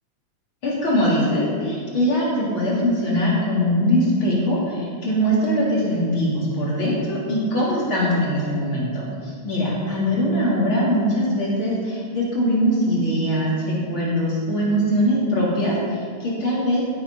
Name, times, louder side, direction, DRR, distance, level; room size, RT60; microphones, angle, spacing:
voice 1, 0.6-16.8, equal, 45° left, -6 dB, 3.9 m, -22 dB
17.0 x 8.5 x 5.6 m, 2.1 s
omnidirectional pair, 3.3 m